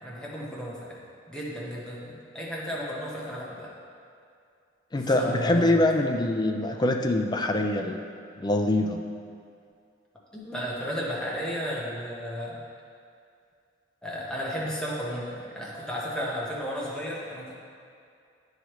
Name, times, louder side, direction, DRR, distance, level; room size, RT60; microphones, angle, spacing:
voice 1, 0.0-1.0 1.3-3.7 5.0-5.8 10.3-12.6 14.0-17.5, equal, 5° left, -6 dB, 1.1 m, -33 dB
voice 2, 4.9-8.0 8.4-9.0, left 1 dB, 25° left, 4 dB, 0.4 m, -24 dB
9.0 x 4.8 x 3.1 m, 2.4 s
head